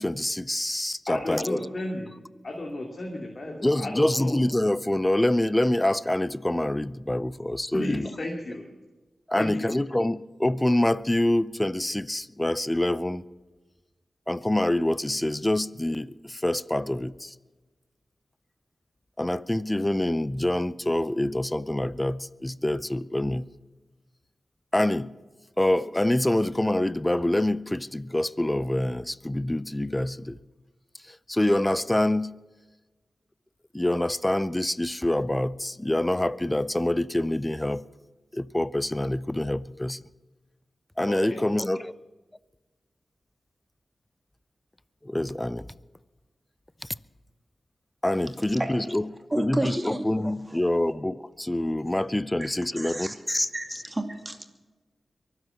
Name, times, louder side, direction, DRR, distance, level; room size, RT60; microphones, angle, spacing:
voice 1, 0.0-1.6 3.6-8.1 9.3-13.2 14.3-17.3 19.2-23.4 24.7-25.1 25.6-30.4 31.1-32.3 33.7-37.8 38.3-40.0 41.0-41.9 45.0-45.7 48.0-49.0 49.4-53.5, left 1 dB, 15° left, 0.6 m, -26 dB
voice 2, 1.1-2.1 2.4-4.3 7.7-8.6 9.3-9.7 41.1-41.4, left 1 dB, 55° left, 2.8 m, -33 dB
voice 3, 49.3-50.1 52.4-52.5 52.8-53.1 53.5-54.5, right 1 dB, 25° right, 2.5 m, -31 dB
23.5 x 8.1 x 5.8 m
cardioid pair, 45°, 0 cm